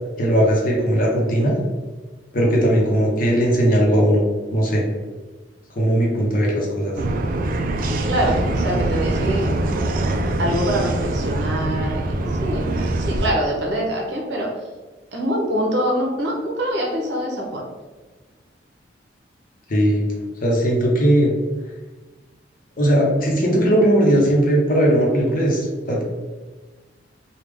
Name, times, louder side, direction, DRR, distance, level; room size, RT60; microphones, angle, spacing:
voice 1, 0.2-1.5 2.3-4.2 4.5-4.8 5.7-6.9 19.7-20.1 20.4-21.3 22.8-26.0, equal, 50° left, -1 dB, 0.8 m, -18 dB
sound 1, 7.0-13.3, right 2 dB, 50° right, 0.3 m, -23 dB
voice 2, 8.1-9.5 10.4-14.5 15.1-17.6, equal, 70° right, -1 dB, 0.8 m, -24 dB
3.4 x 2.3 x 3.4 m, 1.3 s
head